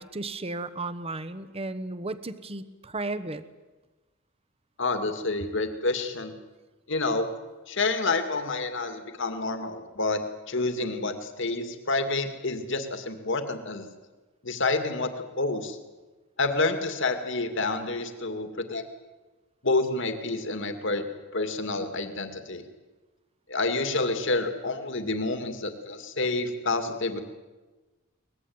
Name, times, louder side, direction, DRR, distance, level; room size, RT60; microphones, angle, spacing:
voice 1, 0.0-3.4, right 2 dB, 30° right, 13 dB, 1.1 m, -34 dB
voice 2, 4.8-6.3 6.9-7.3 7.7-10.2 10.5-13.9 14.4-15.8 16.4-18.8 19.6-21.1 21.3-22.6 23.5-27.2, left 3 dB, 60° left, 7 dB, 2.4 m, -28 dB
23.0 x 20.5 x 9.6 m, 1.2 s
head